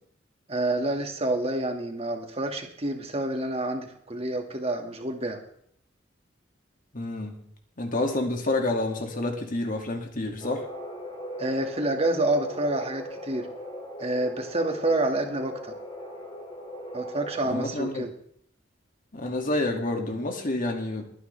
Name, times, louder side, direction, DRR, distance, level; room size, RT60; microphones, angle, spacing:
voice 1, 0.5-5.4 11.4-13.5 14.0-15.7 16.9-18.1, right 1 dB, 35° right, 4 dB, 2.1 m, -28 dB
voice 2, 6.9-7.4 7.8-10.7 17.4-18.1 19.1-21.1, left 2 dB, 45° left, 3 dB, 2.4 m, -29 dB
sound 1, 10.4-17.7, equal, 25° left, 5.3 m, -39 dB
21.5 x 9.6 x 3.5 m, 0.66 s
head